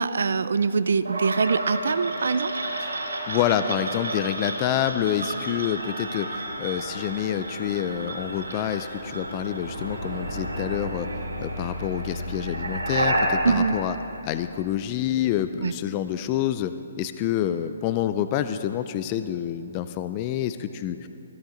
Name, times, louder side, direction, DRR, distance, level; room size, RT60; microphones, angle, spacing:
voice 1, 0.0-2.6 13.4-13.8 15.6-15.7, right 5 dB, 70° right, 14 dB, 0.5 m, -23 dB
sound 1, 1.0-14.9, right 1 dB, 90° right, 3.0 m, -31 dB
voice 2, 3.3-11.1 11.4-14.0 14.2-21.1, left 11 dB, 30° left, 11 dB, 0.4 m, -27 dB
20.0 x 13.0 x 3.9 m, 2.9 s
hypercardioid pair, 145°, 0 cm